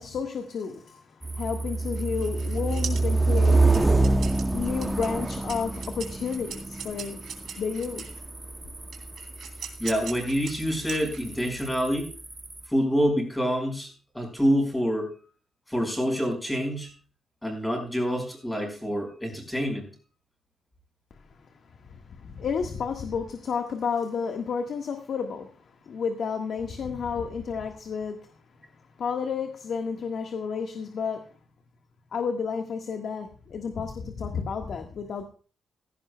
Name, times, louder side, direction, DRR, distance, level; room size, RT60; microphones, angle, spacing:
voice 1, 0.0-4.2 4.5-7.2 7.6-8.1 21.8-25.5 25.8-28.4 29.0-31.3 32.1-35.2, left 6 dB, 60° left, 1.5 m, -31 dB
sound 1, 1.2-12.7, right 3 dB, 10° right, 0.7 m, -27 dB
sound 2, 1.9-8.2 8.9-11.5, right 7 dB, 70° right, 2.9 m, -41 dB
voice 2, 9.8-12.1 12.7-13.9 14.1-15.1 15.7-16.9 17.4-19.9, equal, 5° left, 4.9 m, -26 dB
16.5 x 16.0 x 2.2 m
wide cardioid pair, 140°, 0 cm